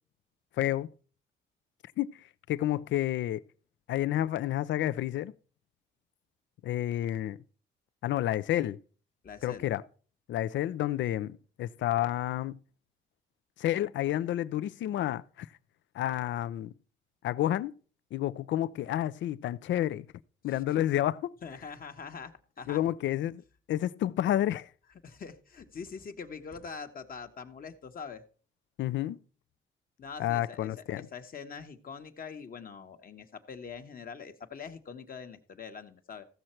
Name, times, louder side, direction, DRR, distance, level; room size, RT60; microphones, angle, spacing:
voice 1, 0.6-0.9 2.0-3.4 3.9-5.3 6.6-7.4 8.0-8.8 9.4-9.8 10.3-12.6 13.6-15.5 15.9-16.7 17.2-17.7 18.1-20.1 20.4-21.3 22.7-23.4 23.7-24.7 28.8-29.2 30.2-31.1, left 13 dB, 70° left, 0.5 m, -30 dB
voice 2, 9.2-9.7 20.5-20.9 21.4-22.8 25.0-28.2 30.0-36.3, left 6 dB, 45° left, 1.2 m, -44 dB
15.0 x 6.5 x 4.4 m
cardioid pair, 90°, 20 cm